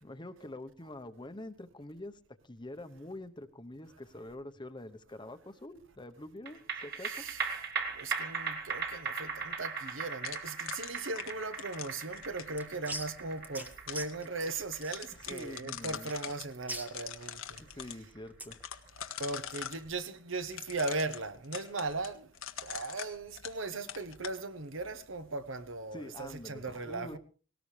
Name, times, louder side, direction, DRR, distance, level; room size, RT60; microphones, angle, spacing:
voice 1, 0.0-2.2 2.4-7.3 15.3-16.1 17.6-18.6 25.9-27.2, left 1 dB, 25° left, 0.9 m, -45 dB
sound 1, 6.5-19.1 19.5-19.6, right 5 dB, 55° right, 2.4 m, -39 dB
voice 2, 7.0-7.4 8.0-17.4 19.2-22.3 22.6-27.2, right 3 dB, 70° right, 1.1 m, -38 dB
sound 2, 10.2-12.6 13.4-14.1 14.5-14.6 14.8-16.5 16.8-18.0 18.5-19.8 20.5-23.6 23.9-24.4, left 9 dB, 90° left, 1.4 m, -42 dB
sound 3, 12.1-18.6, right 1 dB, 10° right, 1.2 m, -45 dB
18.5 x 18.5 x 3.3 m
head